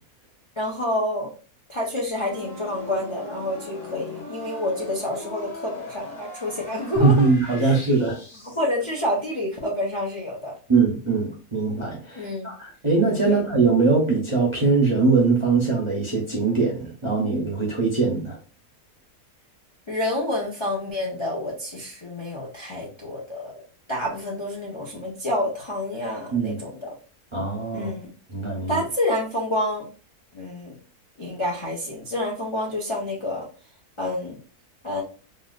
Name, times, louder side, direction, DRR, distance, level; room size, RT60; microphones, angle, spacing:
voice 1, 0.6-1.3 1.7-7.3 7.6-7.8 8.4-10.5 12.2-12.5 13.2-13.4 19.9-23.5 23.9-27.0 27.7-28.1 28.7-29.9 30.3-30.8 31.2-33.5 34.0-34.4 34.8-35.0, left 1 dB, 40° left, -3 dB, 0.4 m, -28 dB
sound 1, 2.1-8.8, left 2 dB, 60° left, 1.6 m, -40 dB
voice 2, 7.0-8.2 10.7-18.4 26.3-26.6 27.3-27.9 28.3-28.8, right 4 dB, 35° right, -3 dB, 0.5 m, -21 dB
3.4 x 2.5 x 2.3 m, 0.38 s
omnidirectional pair, 1.6 m